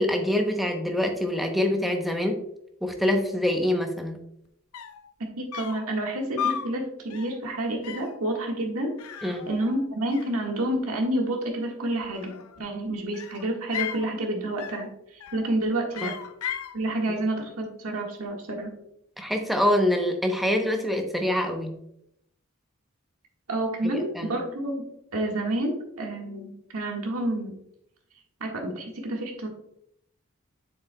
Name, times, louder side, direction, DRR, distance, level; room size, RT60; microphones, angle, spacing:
voice 1, 0.0-2.4 2.8-4.2 9.2-9.5 16.0-16.1 17.1-17.2 19.2-21.8 23.8-24.3, left 1 dB, ahead, 3 dB, 0.8 m, -25 dB
sound 1, 4.4-4.5 4.7-5.1 5.5-5.9 6.4-6.7 7.1-7.4 7.8-8.2 9.0-9.8 10.1-10.8 12.0-12.7 13.1-14.1 14.6-14.9 15.2-15.6 15.9-16.8, left 8 dB, 80° left, 0.6 m, -35 dB
voice 2, 5.4-16.1 16.7-18.7 23.5-24.9 25.1-27.5 28.4-29.5, right 1 dB, 85° right, 1 dB, 1.7 m, -29 dB
7.6 x 7.0 x 2.3 m, 0.75 s
head